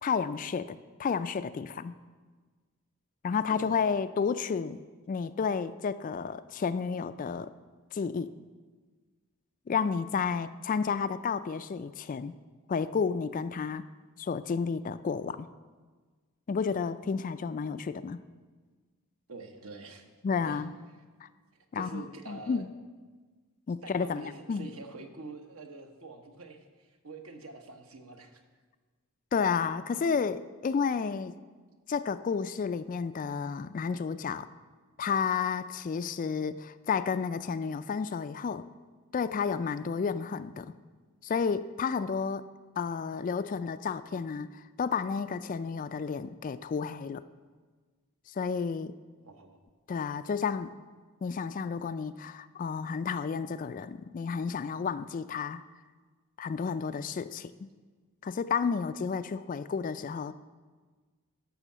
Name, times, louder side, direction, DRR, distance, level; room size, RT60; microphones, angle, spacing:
voice 1, 0.0-1.9 3.2-4.8 5.1-7.5 7.9-8.3 9.7-12.3 12.7-13.8 14.2-15.5 16.5-18.2 20.2-20.7 21.2-21.3 21.7-22.7 23.7-24.7 29.3-31.3 31.9-34.5 35.0-38.7 39.1-40.7 41.2-42.4 42.8-47.2 48.3-48.9 49.9-50.7 51.2-55.6 56.4-57.7 58.2-60.3, left 5 dB, 35° left, 13 dB, 0.3 m, -31 dB
voice 2, 19.3-20.1 20.5-20.6 21.5-22.6 23.8-28.4 49.2-49.6, right 3 dB, 65° right, 5 dB, 1.1 m, -46 dB
12.0 x 5.6 x 7.3 m, 1.4 s
head